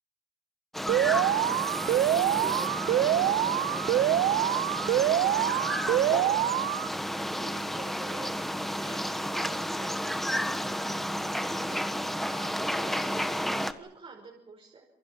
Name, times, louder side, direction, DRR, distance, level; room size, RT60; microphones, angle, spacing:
sound 1, 0.7-13.7, equal, ahead, 1.5 m, -32 dB
Alarm, 0.9-6.9, right 13 dB, 70° right, 0.9 m, -26 dB
voice 1, 1.8-6.6 7.1-11.0 11.5-14.8, right 4 dB, 35° right, 0 dB, 5.3 m, -47 dB
28.0 x 24.0 x 5.9 m, 0.90 s
cardioid pair, 110°, 17 cm